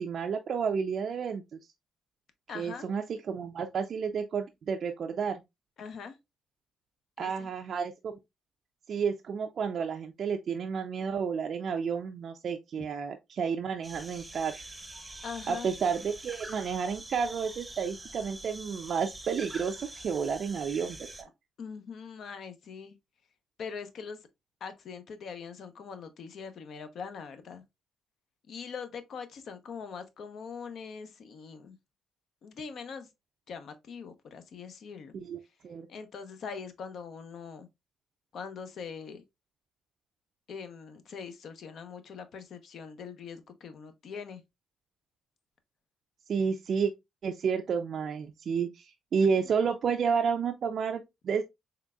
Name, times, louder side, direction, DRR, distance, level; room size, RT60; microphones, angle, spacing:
voice 1, 0.0-1.6 2.5-5.4 7.2-8.2 8.9-14.6 15.5-21.3 35.1-35.4 35.6-35.9 46.3-46.9 47.2-51.4, right 6 dB, 55° right, 0.4 m, -31 dB
voice 2, 2.5-2.9 5.8-6.2 7.2-7.5 15.2-15.7 21.6-23.0 23.6-24.2 24.6-27.6 28.5-31.8 32.4-33.1 33.5-35.2 35.9-37.7 38.3-39.2 40.5-44.4 49.4-49.5, left 6 dB, 65° left, 0.7 m, -42 dB
sound 1, 13.8-21.2, right 2 dB, 15° right, 0.7 m, -45 dB
3.8 x 3.3 x 2.2 m
cardioid pair, 90°, 0 cm